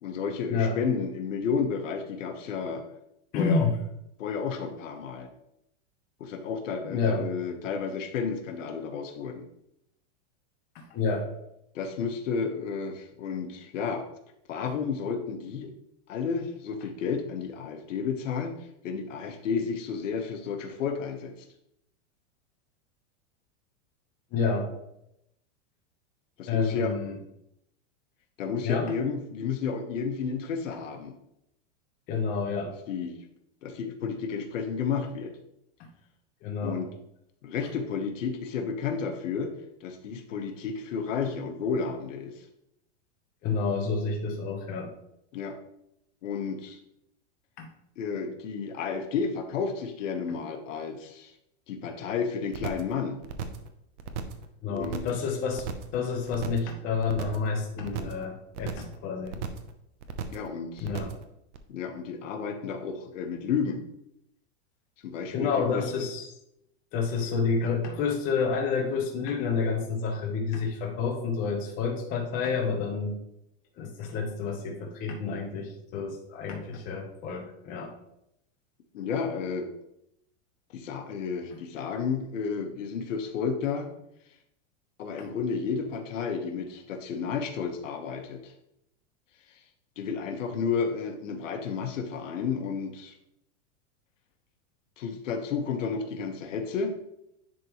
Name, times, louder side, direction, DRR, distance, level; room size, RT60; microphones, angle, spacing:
voice 1, 0.0-2.8 3.3-3.7 4.2-5.3 6.2-9.5 11.7-14.0 14.5-15.7 16.1-18.6 18.8-21.3 26.4-26.9 28.4-31.1 32.9-33.2 33.6-35.3 36.6-36.9 37.4-39.5 39.8-42.4 45.3-45.5 46.2-46.8 48.0-51.3 51.7-53.2 54.7-55.1 60.3-60.9 61.7-63.8 65.0-66.1 78.9-79.7 80.7-83.9 85.0-88.5 90.0-93.1 95.0-96.9, left 6 dB, 80° left, 5 dB, 1.2 m, -32 dB
voice 2, 3.3-3.7 6.9-7.3 10.7-11.2 24.3-24.7 26.5-27.2 28.6-28.9 32.1-32.7 36.4-36.8 43.4-44.9 47.6-47.7 54.6-55.7 55.9-59.4 60.8-61.1 65.3-66.3 66.9-73.2 73.8-77.9, left 5 dB, 20° left, 0 dB, 0.8 m, -29 dB
sound 1, 52.5-52.9 53.2-53.7 54.0-54.4 54.7-55.2 55.5-56.0 56.3-56.7 57.0-57.5 57.8-58.2 58.5-58.9 59.2-59.7 60.0-60.5 60.8-61.2 61.5-61.6, right 7 dB, 70° right, 0.8 m, -35 dB
10.0 x 3.7 x 3.0 m, 0.80 s
supercardioid pair, 170°, 37 cm